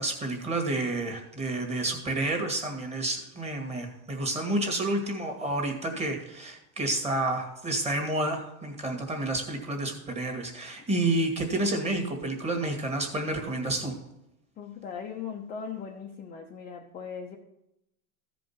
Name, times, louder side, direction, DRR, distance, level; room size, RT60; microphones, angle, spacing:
voice 1, 0.0-14.0, right 2 dB, 15° right, 3 dB, 1.9 m, -30 dB
voice 2, 14.6-17.4, left 6 dB, 20° left, 1 dB, 0.7 m, -39 dB
14.5 x 5.2 x 5.7 m, 0.86 s
supercardioid pair, 150°, 45 cm